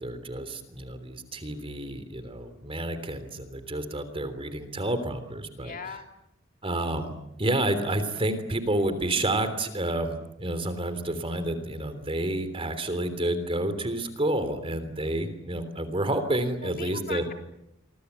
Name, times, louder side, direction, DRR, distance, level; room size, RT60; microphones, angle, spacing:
voice 1, 0.0-5.7 6.6-7.1 7.4-17.2, right 1 dB, 30° right, 10 dB, 3.3 m, -29 dB
voice 2, 5.6-6.1 16.6-17.3, left 6 dB, 45° left, 5 dB, 3.4 m, -39 dB
27.5 x 25.0 x 8.3 m, 0.84 s
head